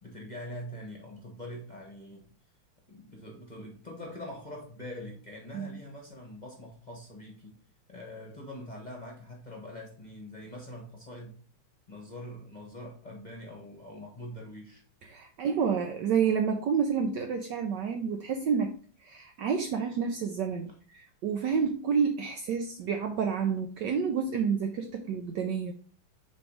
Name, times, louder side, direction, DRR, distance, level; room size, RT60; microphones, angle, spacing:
voice 1, 0.0-2.2 2.9-7.5 7.9-11.4 11.9-14.8, left 1 dB, 25° left, -1 dB, 1.1 m, -43 dB
voice 2, 15.0-25.7, right 6 dB, 70° right, 5 dB, 1.1 m, -29 dB
7.1 x 3.3 x 4.8 m, 0.43 s
omnidirectional pair, 2.4 m